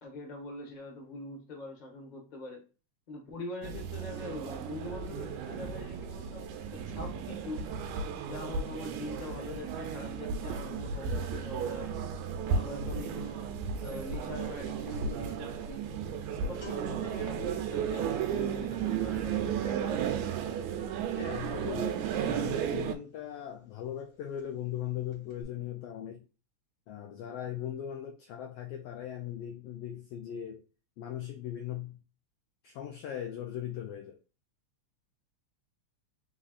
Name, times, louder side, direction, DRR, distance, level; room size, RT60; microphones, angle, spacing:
voice 1, 0.0-2.6 3.1-7.7 8.2-11.9 12.4-13.5 13.8-15.9 16.5-20.3, left 2 dB, 65° left, 0.4 m, -43 dB
sound 1, 3.6-22.9, right 7 dB, 80° right, 1.9 m, -34 dB
sound 2, 15.2-23.2 23.5-23.7 24.0-24.8 25.1-25.4, left 6 dB, 20° left, 1.9 m, -54 dB
voice 2, 21.2-26.2 26.9-30.6 31.0-32.0 32.6-34.2, left 10 dB, 90° left, 1.4 m, -39 dB
4.3 x 4.1 x 2.4 m
omnidirectional pair, 3.3 m